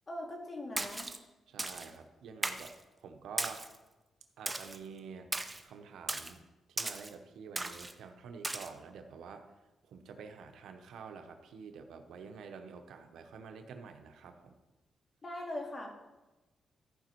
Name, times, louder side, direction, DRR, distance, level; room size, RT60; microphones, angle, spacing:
voice 1, 0.1-1.1 15.2-15.9, left 1 dB, 35° left, 0 dB, 2.1 m, -40 dB
Splash splatter, 0.8-1.2 1.6-1.9 2.4-2.7 3.4-3.8 4.5-4.8 5.3-5.6 6.1-6.3 6.8-7.1 7.6-7.9 8.4-8.7, right 2 dB, 15° right, 0.7 m, -37 dB
voice 2, 1.5-2.7 3.0-3.7 4.4-5.3 5.6-6.4 6.7-9.5 9.9-14.5, right 5 dB, 85° right, 6 dB, 0.9 m, -48 dB
13.5 x 5.1 x 4.6 m, 1.1 s
cardioid pair, 105°, 0 cm